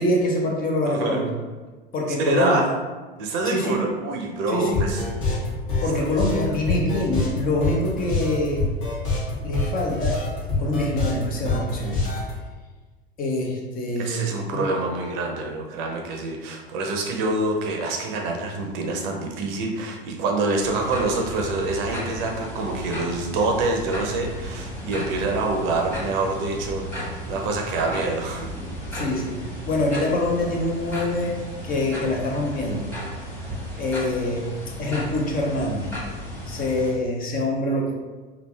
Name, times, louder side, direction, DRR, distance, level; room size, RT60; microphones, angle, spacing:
voice 1, 0.0-1.3 1.9-2.6 3.4-3.8 4.5-4.9 5.8-8.7 9.4-10.3 10.6-12.1 13.2-14.7 28.9-29.4 29.6-33.0 33.7-34.5 34.8-35.9 36.5-37.9, left 1 dB, 30° left, -1 dB, 0.7 m, -25 dB
voice 2, 0.9-1.2 2.2-2.7 3.2-5.0 6.5-6.6 14.0-28.5, right 2 dB, 50° right, 2 dB, 0.7 m, -26 dB
sound 1, 4.7-12.3, left 3 dB, 55° left, 1.5 m, -26 dB
sound 2, 20.6-36.9, equal, 5° left, 1.2 m, -34 dB
3.3 x 2.4 x 3.2 m, 1.3 s
figure-of-eight pair, 85°, 30 cm